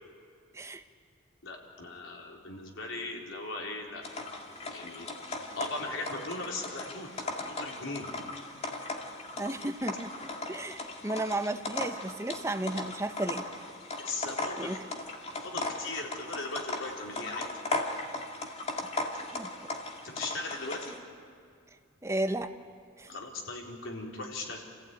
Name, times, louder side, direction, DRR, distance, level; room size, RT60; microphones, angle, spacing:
voice 1, 1.4-4.0 4.7-5.1 5.6-7.1 7.4-8.2 14.0-14.8 15.4-17.5 20.0-20.9 23.1-24.6, left 2 dB, 75° left, 0 dB, 3.8 m, -38 dB
sound 1, 4.0-21.0, left 2 dB, 35° left, 2.1 m, -38 dB
voice 2, 9.4-10.1 10.5-13.4 14.6-14.8 19.3-19.5 22.0-22.5 23.0-23.1, right 1 dB, 15° right, 7 dB, 1.0 m, -33 dB
28.5 x 15.5 x 9.1 m, 2.2 s
head